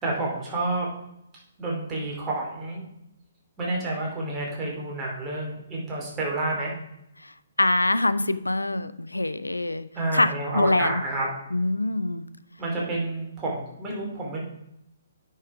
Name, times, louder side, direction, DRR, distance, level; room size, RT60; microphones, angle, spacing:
voice 1, 0.0-0.9 1.6-2.8 3.6-6.7 9.9-11.3 12.6-14.4, right 2 dB, 15° right, -3 dB, 2.8 m, -29 dB
voice 2, 7.6-9.9 10.1-11.0 11.5-12.2, left 2 dB, 80° left, 13 dB, 0.5 m, -24 dB
9.3 x 5.6 x 4.9 m, 0.81 s
figure-of-eight pair, 130°, 0 cm